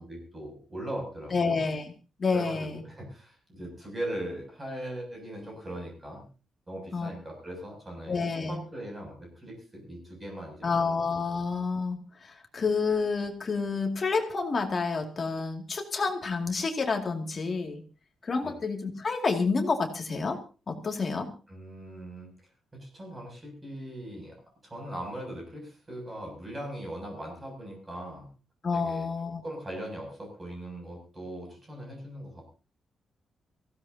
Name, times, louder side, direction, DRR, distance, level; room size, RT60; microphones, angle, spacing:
voice 1, 0.1-1.7 2.3-6.3 6.7-11.1 18.4-18.5 21.5-22.3 22.7-24.4 24.6-28.3 28.7-29.1 29.4-32.5, right 1 dB, 20° right, 0 dB, 7.2 m, -40 dB
voice 2, 1.3-1.9 2.2-2.8 6.9-7.1 8.1-8.6 10.6-17.8 18.2-20.4 20.7-21.3 28.6-29.4, left 4 dB, 30° left, 3 dB, 2.4 m, -29 dB
23.5 x 16.0 x 2.8 m, 0.34 s
wide cardioid pair, 170°, 0 cm